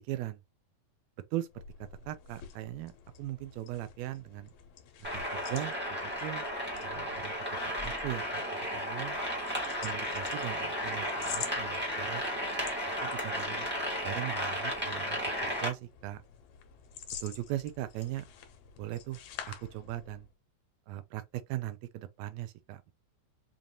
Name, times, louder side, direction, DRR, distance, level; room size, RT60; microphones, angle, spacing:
voice 1, 0.1-0.4 1.3-1.5 2.1-2.9 3.2-4.5 5.0-5.7 6.0-6.4 6.8-7.3 7.8-9.2 9.8-12.2 13.0-13.7 14.0-16.2 17.2-18.2 18.8-19.2 19.5-20.3 20.9-22.9, right 14 dB, 80° right, 1.6 m, -39 dB
sound 1, 1.4-20.3, left 8 dB, 70° left, 1.9 m, -49 dB
sound 2, 5.0-15.7, equal, 15° right, 0.4 m, -34 dB
5.2 x 2.5 x 2.8 m
omnidirectional pair, 3.5 m